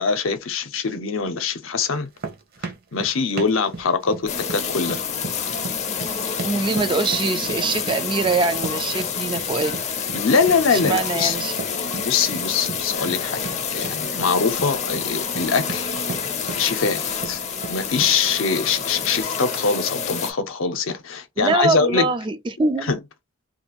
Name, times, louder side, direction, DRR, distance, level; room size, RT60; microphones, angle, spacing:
voice 1, 0.0-2.1 2.9-5.0 10.1-11.4 11.9-13.4 13.7-15.9 16.6-17.4 17.7-22.1 22.8-23.0, left 5 dB, 75° left, 0.6 m, -23 dB
sound 1, 1.9-18.3, right 3 dB, 50° right, 0.8 m, -36 dB
sound 2, 4.2-19.2, right 2 dB, 75° right, 1.5 m, -45 dB
sound 3, 4.3-20.3, left 6 dB, 35° left, 0.6 m, -28 dB
voice 2, 6.4-9.8 10.7-11.6 21.4-22.9, right 3 dB, 25° right, 0.3 m, -23 dB
2.6 x 2.4 x 2.9 m
head